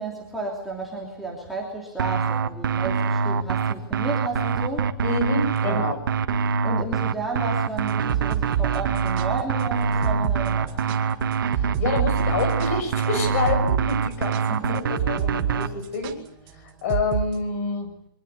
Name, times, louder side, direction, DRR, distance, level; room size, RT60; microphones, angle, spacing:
voice 1, 0.0-4.9 5.6-5.9 6.6-10.8 14.5-14.8, right 2 dB, ahead, -4 dB, 3.0 m, -32 dB
sound 1, 2.0-15.7, right 6 dB, 65° right, 1.6 m, -24 dB
voice 2, 5.0-6.0 11.5-14.4 14.7-16.2 16.5-17.9, left 4 dB, 40° left, 7 dB, 6.8 m, -28 dB
sound 2, 7.9-15.6 15.8-16.1 16.9-17.3, right 10 dB, 25° right, 1.7 m, -29 dB
24.0 x 19.5 x 8.2 m, 0.72 s
hypercardioid pair, 170°, 12 cm